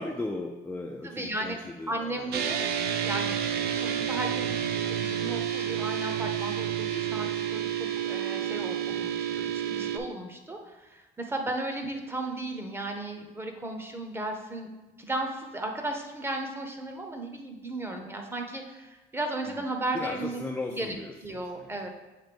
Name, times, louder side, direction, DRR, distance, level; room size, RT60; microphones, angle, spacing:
voice 1, 0.0-2.3 19.9-21.1 21.6-21.7, left 2 dB, 10° left, 0 dB, 0.4 m, -36 dB
voice 2, 1.0-1.6 1.9-2.7 3.0-3.3 3.7-14.7 15.0-20.4 20.7-21.9, right 2 dB, 15° right, 3 dB, 0.8 m, -35 dB
sound 1, 2.3-10.0, right 9 dB, 70° right, 0.6 m, -30 dB
7.5 x 2.6 x 5.1 m, 1.1 s
cardioid pair, 110°, 17 cm